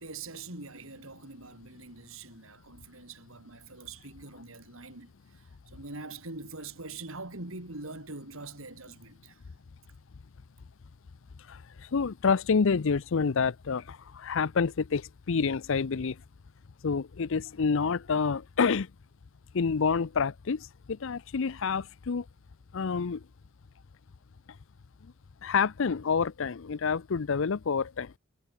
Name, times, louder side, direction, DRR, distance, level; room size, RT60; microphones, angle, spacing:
voice 1, 0.0-5.1 5.7-9.4, right 3 dB, 70° right, 4.4 m, -43 dB
voice 2, 11.5-16.2 16.8-18.9 19.5-22.2 22.7-23.2 25.4-28.1, left 5 dB, 65° left, 0.6 m, -28 dB
head